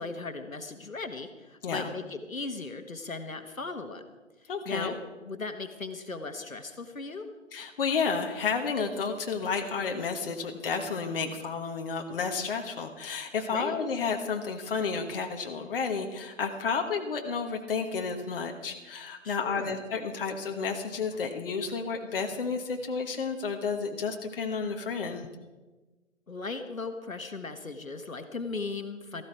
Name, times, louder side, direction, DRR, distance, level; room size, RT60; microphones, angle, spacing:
voice 1, 0.0-4.0 4.4-5.0 5.3-7.3 13.5-13.8 19.2-19.8 26.3-29.2, left 3 dB, 85° left, 7 dB, 1.6 m, -37 dB
voice 2, 4.5-4.9 7.5-25.3, left 5 dB, 45° left, 4 dB, 1.3 m, -31 dB
14.5 x 14.5 x 4.6 m, 1.2 s
figure-of-eight pair, 145°, 40 cm